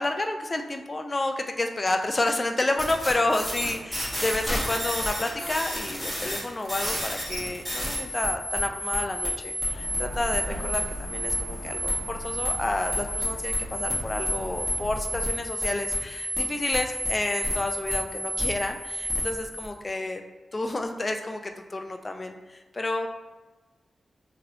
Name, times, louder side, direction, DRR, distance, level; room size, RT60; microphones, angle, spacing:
voice 1, 0.0-20.2 20.5-21.4 21.7-23.1, left 2 dB, 35° left, 5 dB, 0.3 m, -30 dB
sound 1, 2.8-19.6, equal, ahead, 1.3 m, -30 dB
Truck, 9.7-15.3, equal, 55° right, 1.4 m, -37 dB
3.0 x 2.9 x 2.5 m, 1.2 s
cardioid pair, 80°, 0 cm